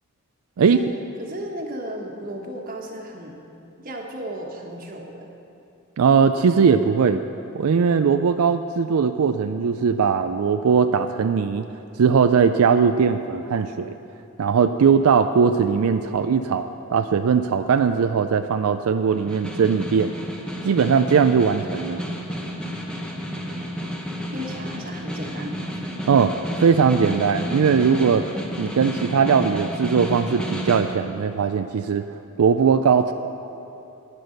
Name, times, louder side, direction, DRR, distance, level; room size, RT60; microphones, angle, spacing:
voice 1, 0.6-0.9 1.2-3.4 3.8-5.3 24.3-26.0, right 1 dB, 40° right, 1 dB, 1.4 m, -35 dB
voice 2, 6.0-7.2 7.5-11.6 12.0-13.9 14.4-20.1 20.6-22.0 26.1-26.3 26.6-28.2 28.6-33.1, right 6 dB, 80° right, 8 dB, 0.4 m, -19 dB
Snare drum, 19.1-31.0, equal, 5° left, 1.0 m, -31 dB
12.0 x 9.9 x 6.5 m, 2.8 s
head